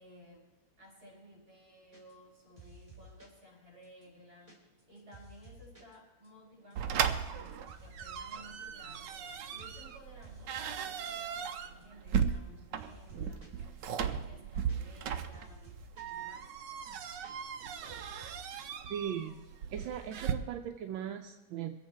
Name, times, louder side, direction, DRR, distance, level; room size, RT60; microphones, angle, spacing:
voice 1, 0.0-16.6, equal, 50° right, -2 dB, 5.5 m, -57 dB
sound 1, 1.9-2.3 2.6-3.4 3.8-5.9 6.2-6.3 6.6-7.1 7.4-8.4 8.6-9.3 9.6-9.9 10.2-11.1 11.4-11.5 11.7-12.5 12.8-13.6 14.0-16.2 16.5-16.6 16.8-17.6 17.9-18.6 18.8-19.5 19.8-20.1, right 2 dB, 15° right, 3.0 m, -55 dB
sound 2, 6.8-20.3, right 8 dB, 70° right, 1.4 m, -37 dB
voice 2, 18.9-19.4 19.7-21.8, right 9 dB, 85° right, 5 dB, 1.5 m, -38 dB
22.5 x 8.5 x 4.5 m, 1.1 s
omnidirectional pair, 2.0 m